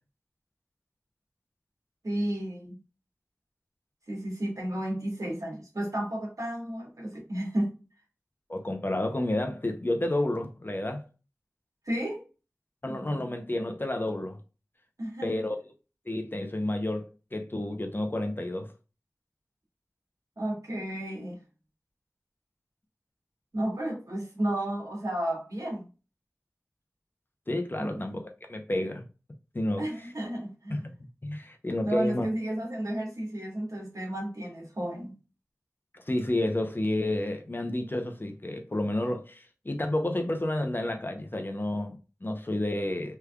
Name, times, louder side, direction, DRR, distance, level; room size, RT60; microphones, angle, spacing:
voice 1, 2.0-2.8 4.1-7.7 11.8-12.2 12.9-13.3 15.0-15.3 20.4-21.4 23.5-25.9 27.8-28.0 29.8-30.8 31.8-35.1, right 1 dB, 75° right, 1.4 m, -32 dB
voice 2, 8.5-11.0 12.8-14.4 15.2-15.6 16.1-18.7 27.5-28.2 28.5-29.1 29.5-29.8 30.7-30.9 31.2-32.3 35.9-43.2, left 1 dB, 40° left, 0.7 m, -30 dB
3.4 x 3.2 x 2.3 m
wide cardioid pair, 50°, 6 cm